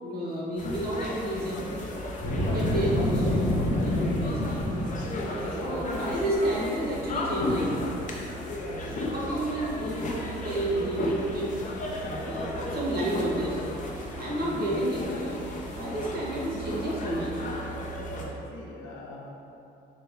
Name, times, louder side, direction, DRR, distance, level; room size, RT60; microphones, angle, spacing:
voice 1, 0.0-1.6 2.3-3.6 3.8-4.7 5.4-7.8 8.9-11.6 12.1-13.9 14.2-15.4 15.7-17.4, right 1 dB, 50° right, -5 dB, 0.9 m, -31 dB
sound 1, 0.6-18.2, left 1 dB, 40° left, 0.5 m, -34 dB
Boom, 2.2-5.3, left 1 dB, 70° left, 1.0 m, -27 dB
voice 2, 17.9-19.3, left 2 dB, 85° left, -1 dB, 0.5 m, -44 dB
4.2 x 2.2 x 3.4 m, 2.8 s
cardioid pair, 90°, 20 cm